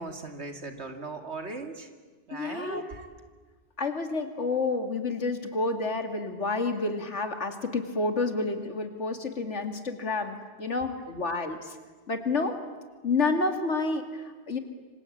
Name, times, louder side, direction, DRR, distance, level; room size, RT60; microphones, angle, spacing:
voice 1, 0.0-1.9 2.3-3.1 10.4-10.5, right 2 dB, 70° right, 6 dB, 2.7 m, -38 dB
voice 2, 2.3-2.8 3.8-11.8 12.1-12.6 13.0-14.6, left 3 dB, 85° left, 6 dB, 2.7 m, -29 dB
26.5 x 26.0 x 8.7 m, 1.4 s
omnidirectional pair, 1.2 m